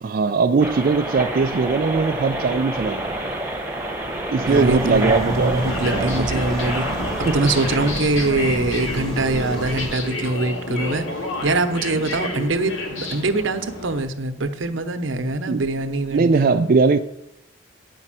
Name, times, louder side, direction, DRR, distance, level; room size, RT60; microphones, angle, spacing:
voice 1, 0.0-3.0 4.3-5.6 5.9-6.4 7.3-7.4 15.5-15.6 16.1-17.0, right 4 dB, 50° right, 0.4 m, -20 dB
sound 1, 0.6-7.9, right 1 dB, 10° right, 1.2 m, -28 dB
sound 2, 4.4-9.9, right 1 dB, 25° left, 2.7 m, -31 dB
voice 2, 4.5-6.9 7.3-11.1 11.4-16.5, right 2 dB, 85° right, 0.9 m, -23 dB
sound 3, 5.3-14.0, left 2 dB, 85° left, 1.9 m, -30 dB
9.3 x 5.4 x 7.5 m
head